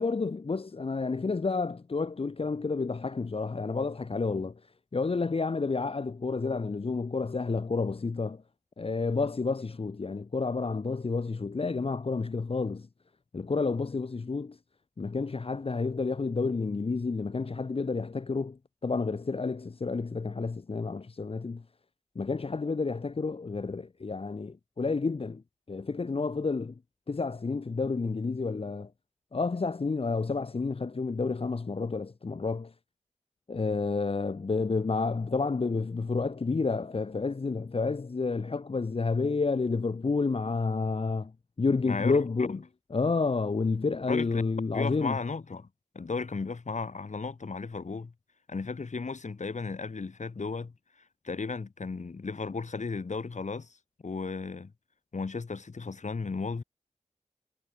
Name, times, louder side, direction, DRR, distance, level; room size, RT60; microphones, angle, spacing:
voice 1, 0.0-4.6 4.9-8.4 8.8-12.9 13.3-14.6 15.0-21.6 22.2-25.4 25.7-26.7 27.1-28.9 29.3-32.7 33.5-41.3 41.6-42.6 42.9-45.2, left 4 dB, 50° left, 0.8 m, -30 dB
voice 2, 41.8-42.6 44.1-44.4 44.7-45.7 45.9-48.1 48.5-50.7 51.2-53.8 54.0-54.7 55.1-56.6, left 4 dB, 75° left, 5.5 m, -35 dB
wide cardioid pair, 60°, 12 cm